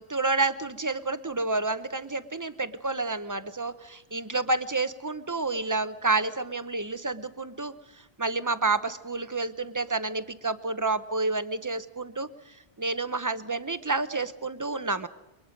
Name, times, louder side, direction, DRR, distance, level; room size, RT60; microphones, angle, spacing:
voice 1, 0.0-7.7 8.2-12.3 12.8-15.1, right 3 dB, 20° right, 12 dB, 0.7 m, -29 dB
29.0 x 23.0 x 5.2 m, 0.98 s
omnidirectional pair, 1.1 m